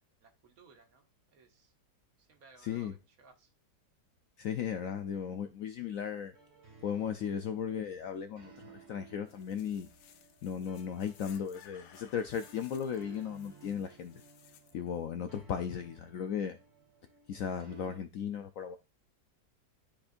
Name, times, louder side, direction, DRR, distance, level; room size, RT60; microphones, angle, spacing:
voice 1, 0.0-1.7 2.2-3.5, right 4 dB, 60° right, 1.4 m, -61 dB
voice 2, 2.6-2.9 4.4-6.3 6.8-9.9 10.4-14.2 14.7-16.6 17.3-18.8, left 8 dB, 70° left, 0.8 m, -36 dB
sound 1, 6.3-18.0, right 5 dB, 40° right, 1.9 m, -58 dB
sound 2, 9.3-14.7, left 9 dB, 90° left, 1.3 m, -59 dB
12.0 x 4.3 x 2.5 m
omnidirectional pair, 1.8 m